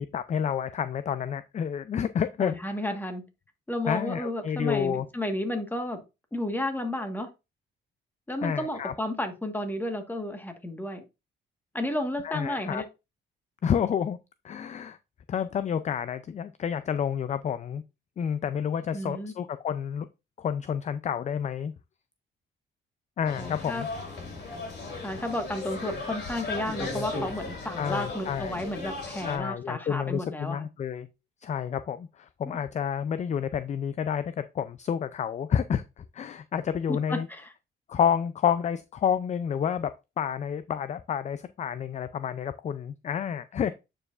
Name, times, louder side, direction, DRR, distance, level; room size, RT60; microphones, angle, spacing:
voice 1, 0.0-2.5 3.9-5.1 8.4-8.9 12.2-12.8 13.6-14.2 14.4-15.0 15.3-17.8 18.2-20.1 20.4-21.7 23.2-23.9 27.8-28.6 29.2-31.1 31.4-37.3 37.9-39.9 40.2-43.7, left 8 dB, 35° left, 0.4 m, -29 dB
voice 2, 2.4-3.2 3.7-6.0 6.3-7.3 8.3-11.0 11.7-12.8 18.9-19.3 23.4-23.8 25.0-30.6 36.9-37.5, left 1 dB, 10° left, 1.4 m, -32 dB
sound 1, 23.2-29.4, left 3 dB, 55° left, 3.3 m, -36 dB
8.7 x 4.8 x 2.5 m
cardioid pair, 90°, 20 cm